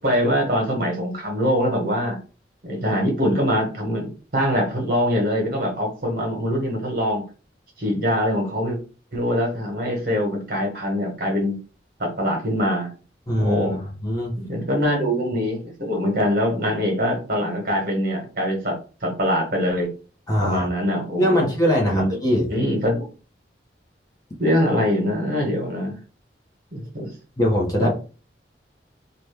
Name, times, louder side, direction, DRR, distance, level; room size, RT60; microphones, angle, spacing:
voice 1, 0.0-2.2 2.6-7.2 7.8-8.8 9.1-11.6 12.0-12.9 13.4-13.9 14.4-19.9 20.4-21.5 21.8-22.2 22.5-23.1 24.4-26.0 26.7-27.1 27.8-27.9, equal, 50° right, 1 dB, 1.3 m, -23 dB
voice 2, 13.3-13.7 14.0-14.3 20.3-20.7 21.2-22.5 27.4-27.9, equal, 20° left, -2 dB, 0.9 m, -21 dB
2.9 x 2.4 x 3.4 m, 0.35 s
head